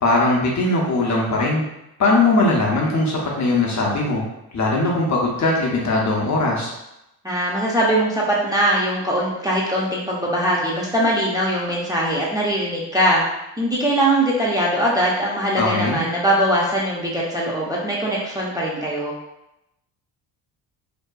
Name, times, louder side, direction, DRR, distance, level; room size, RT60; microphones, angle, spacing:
voice 1, 0.0-1.6 2.0-4.2 4.5-6.7 15.6-16.0, left 2 dB, 40° left, -3 dB, 0.7 m, -20 dB
voice 2, 7.2-13.2 13.6-19.1, right 1 dB, 10° right, -6 dB, 0.6 m, -21 dB
2.6 x 2.2 x 2.2 m, 0.88 s
supercardioid pair, 60°, 44 cm